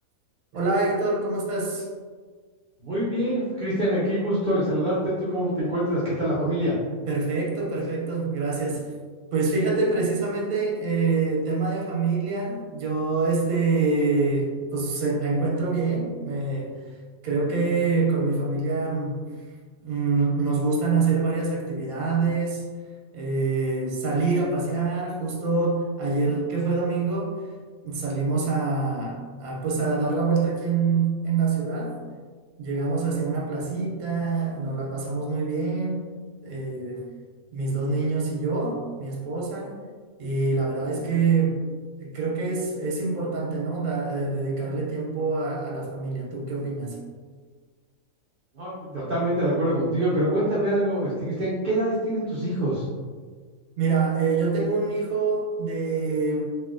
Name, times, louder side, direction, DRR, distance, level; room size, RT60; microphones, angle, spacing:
voice 1, 0.5-1.9 7.1-8.9 9.3-16.7 17.2-19.2 19.8-22.7 23.1-27.4 27.8-32.0 32.6-36.1 36.4-37.0 37.5-39.7 40.2-41.7 42.0-47.0 53.8-56.5, right 4 dB, 80° right, -3 dB, 1.1 m, -25 dB
voice 2, 2.8-6.7 48.5-52.8, right 1 dB, 50° right, -8 dB, 0.6 m, -25 dB
3.0 x 2.6 x 2.5 m, 1.5 s
omnidirectional pair, 1.5 m